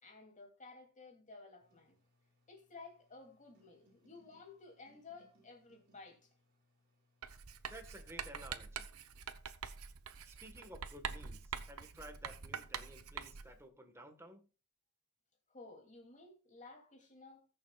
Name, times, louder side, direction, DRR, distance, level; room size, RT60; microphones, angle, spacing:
voice 1, 0.0-2.0 2.5-6.3 15.5-17.5, left 3 dB, 35° left, 2.8 m, -55 dB
sound 1, 1.6-9.5, equal, 50° right, 6.5 m, -73 dB
Writing, 7.2-13.6, right 7 dB, 90° right, 0.9 m, -45 dB
voice 2, 7.7-8.9 10.2-11.4 11.7-14.5, right 1 dB, 10° right, 1.4 m, -54 dB
20.0 x 6.8 x 2.4 m
head